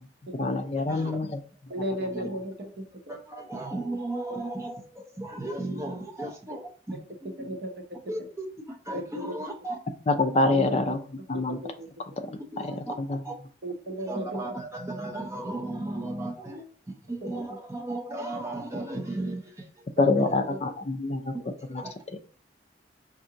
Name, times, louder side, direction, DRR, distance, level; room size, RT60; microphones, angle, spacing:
voice 1, 0.3-1.3 2.2-2.3 10.1-11.0 11.3-11.6 12.2-13.2 20.0-21.3 21.7-21.8 22.1-22.2, left 2 dB, 35° left, 7 dB, 0.4 m, -26 dB
voice 2, 0.9-1.2 2.1-2.2 3.1-7.5 8.1-9.8 10.4-10.6 12.5-12.9 13.2-13.3 14.1-19.9 20.2-20.3 21.6-21.9, right 2 dB, 15° right, 0 dB, 0.6 m, -35 dB
voice 3, 1.7-2.7 3.1-3.2 7.4-7.7 8.9-9.3 10.5-11.0 11.6-11.9 13.6-14.4 17.2-17.4 20.0-20.6, equal, 55° right, 3 dB, 0.7 m, -34 dB
4.7 x 2.5 x 2.8 m, 0.42 s
head